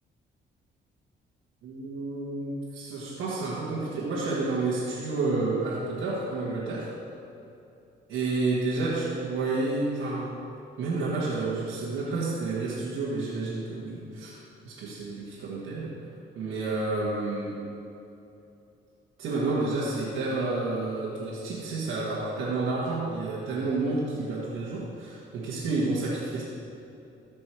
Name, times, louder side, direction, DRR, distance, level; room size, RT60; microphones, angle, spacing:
voice 1, 1.6-6.9 8.1-10.4 10.8-14.4 14.7-15.9 16.4-17.6 19.2-26.4, right 3 dB, 85° right, -7 dB, 1.7 m, -30 dB
14.0 x 5.3 x 4.6 m, 2.7 s
cardioid pair, 90°, 20 cm